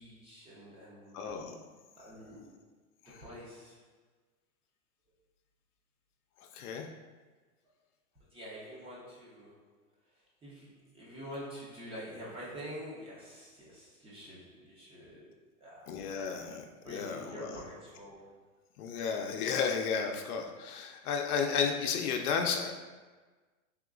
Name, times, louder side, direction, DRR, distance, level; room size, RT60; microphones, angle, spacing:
voice 1, 0.0-1.3 2.0-2.6 3.2-3.9 8.3-9.7 10.1-16.2 16.8-18.3, equal, 15° right, -7 dB, 0.6 m, -47 dB
voice 2, 1.1-1.6 3.1-3.2 6.5-6.9 15.9-17.6 18.8-22.7, left 6 dB, 75° left, 3 dB, 0.6 m, -33 dB
3.5 x 2.9 x 2.4 m, 1.3 s
hypercardioid pair, 135°, 45 cm